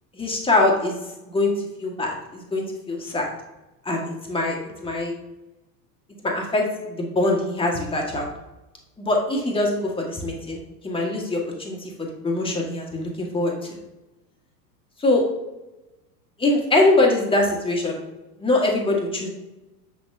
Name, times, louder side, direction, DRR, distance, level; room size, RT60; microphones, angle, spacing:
voice 1, 0.1-1.0 1.3-1.5 1.8-3.3 3.8-4.6 4.8-5.1 6.2-8.3 9.0-13.8 15.0-15.2 16.4-18.0 18.4-19.3, left 2 dB, 10° left, -1 dB, 1.5 m, -23 dB
6.9 x 6.2 x 2.6 m, 1.0 s
hypercardioid pair, 105°, 48 cm